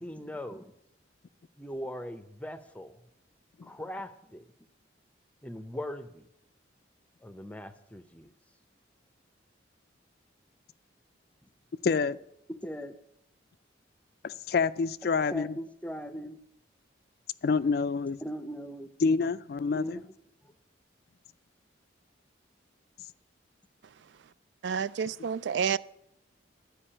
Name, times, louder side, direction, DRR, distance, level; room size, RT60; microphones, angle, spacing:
voice 1, 0.0-0.7 1.6-3.0 3.6-4.5 5.4-6.3 7.2-8.3 12.5-13.0 15.3-16.4 18.2-18.9 19.7-20.0, equal, 5° left, 0.6 m, -39 dB
voice 2, 11.8-12.2 14.2-15.5 17.4-18.2 19.0-20.0, left 4 dB, 55° left, 0.3 m, -27 dB
voice 3, 24.6-25.8, right 6 dB, 70° right, 0.3 m, -29 dB
12.0 x 5.2 x 8.7 m
head